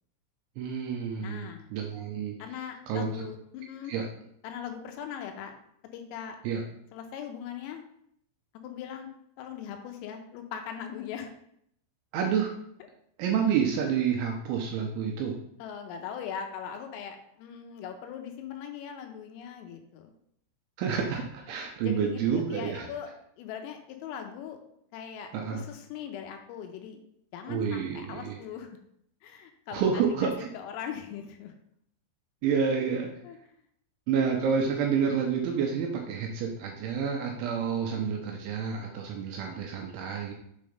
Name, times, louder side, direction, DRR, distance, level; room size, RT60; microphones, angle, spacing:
voice 1, 0.6-2.4 2.9-3.2 3.9-4.1 6.4-6.6 12.1-12.5 13.2-15.4 20.8-22.9 25.3-25.6 27.5-28.4 29.7-30.5 32.4-33.1 34.1-40.3, right 6 dB, 80° right, 0 dB, 2.9 m, -29 dB
voice 2, 1.2-1.7 2.4-4.0 4.4-5.5 5.9-6.4 6.9-7.8 8.6-9.1 9.4-11.3 15.6-20.1 21.8-24.6 24.9-27.0 27.3-28.7 29.2-31.5 33.2-33.4, left 8 dB, 85° left, 5 dB, 3.4 m, -40 dB
7.8 x 3.8 x 5.0 m, 0.71 s
omnidirectional pair, 6.0 m